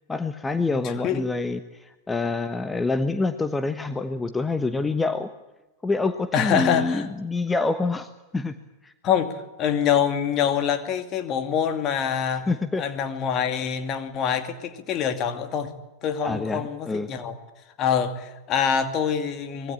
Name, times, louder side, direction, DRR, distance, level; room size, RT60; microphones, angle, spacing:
voice 1, 0.1-5.3 5.8-8.6 8.8-8.9 12.3-12.8 16.2-17.1, left 3 dB, 10° left, 1.2 m, -26 dB
voice 2, 0.7-1.3 6.3-7.1 9.0-9.3 9.6-12.5 12.8-15.7 16.0-17.3 17.8-19.7, left 8 dB, 35° left, 2.4 m, -25 dB
25.0 x 20.5 x 8.7 m
figure-of-eight pair, 90°, 0 cm